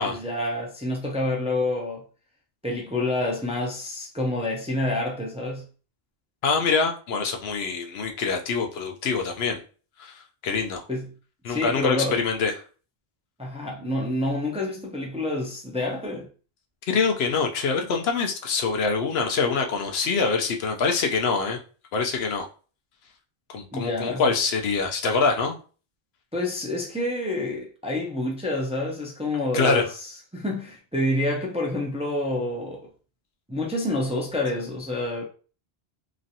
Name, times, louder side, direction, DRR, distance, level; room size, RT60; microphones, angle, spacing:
voice 1, 0.0-2.0 2.6-5.6 10.9-11.1 11.5-12.2 13.4-16.3 23.7-24.2 26.3-29.9 30.3-32.9 33.5-35.2, left 1 dB, 10° right, 0.4 m, -28 dB
voice 2, 6.4-9.6 10.0-10.9 11.4-12.5 16.9-21.6 21.9-22.5 23.5-25.6 29.5-29.8, left 4 dB, 80° left, 0.8 m, -25 dB
3.0 x 2.5 x 2.7 m
omnidirectional pair, 1.1 m